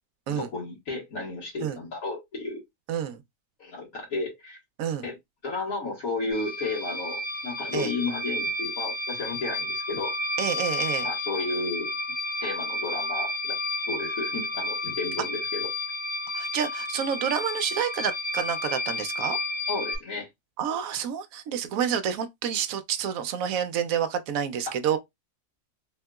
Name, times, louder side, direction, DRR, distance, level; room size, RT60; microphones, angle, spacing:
voice 1, 0.3-2.6 3.6-4.6 5.0-5.2 5.4-10.1 11.0-11.9 12.4-13.6 13.9-15.7 19.7-20.3, left 3 dB, 65° left, 2.0 m, -33 dB
voice 2, 2.9-3.2 4.8-5.0 7.7-7.9 10.4-11.1 16.3-19.4 20.6-25.0, right 8 dB, 70° right, 0.9 m, -29 dB
sound 1, 6.3-20.0, left 1 dB, 45° left, 1.5 m, -31 dB
3.6 x 2.7 x 2.3 m
omnidirectional pair, 1.6 m